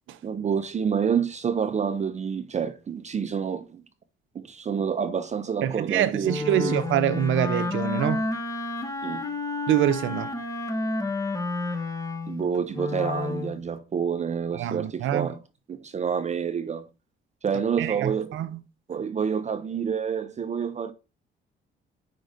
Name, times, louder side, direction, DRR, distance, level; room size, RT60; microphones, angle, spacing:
voice 1, 0.2-3.8 4.3-6.7 9.0-9.2 12.3-15.4 15.7-16.8 17.4-18.4 18.9-20.9, right 7 dB, 35° right, 0.5 m, -28 dB
voice 2, 5.6-8.3 9.7-10.3 14.5-15.3 17.8-18.6, right 11 dB, 80° right, 0.6 m, -25 dB
Wind instrument woodwind instrument, 6.2-13.6, left 2 dB, 15° left, 0.9 m, -30 dB
5.1 x 3.8 x 5.0 m
cardioid pair, 90°, 20 cm